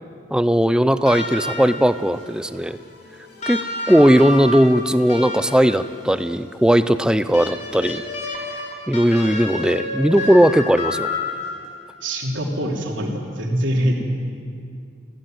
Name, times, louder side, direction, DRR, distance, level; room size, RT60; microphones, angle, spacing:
voice 1, 0.3-2.8 3.5-8.0 8.9-11.1, equal, 5° right, 12 dB, 0.5 m, -17 dB
sound 1, 1.0-2.0 3.4-6.0 7.3-11.8 13.1-13.2, left 2 dB, 35° left, 3.5 m, -29 dB
sound 2, 1.1-13.3, left 1 dB, 60° left, 6.3 m, -50 dB
voice 2, 12.0-14.0, equal, 75° right, 0 dB, 3.5 m, -23 dB
24.5 x 16.5 x 9.3 m, 2.3 s
head